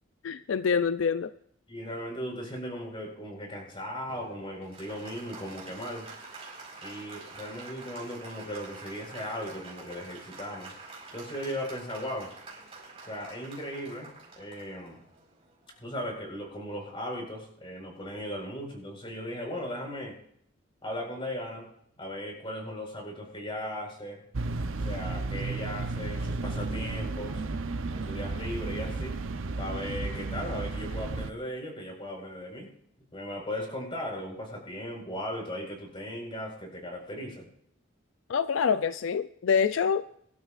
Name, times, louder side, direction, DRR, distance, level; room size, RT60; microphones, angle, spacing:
voice 1, 0.2-1.3 38.3-40.1, left 6 dB, 75° left, 12 dB, 0.4 m, -26 dB
voice 2, 1.7-6.1 6.8-10.7 11.1-12.3 13.1-15.0 15.8-20.2 20.8-21.7 22.0-24.2 24.8-27.4 27.9-29.2 29.6-32.7 33.1-37.5, equal, 25° left, 0 dB, 4.6 m, -37 dB
Applause, 4.1-16.0, right 3 dB, 30° right, 4.5 m, -47 dB
sound 1, 24.3-31.3, right 3 dB, 80° right, 0.7 m, -33 dB
23.5 x 12.5 x 2.5 m, 0.67 s
head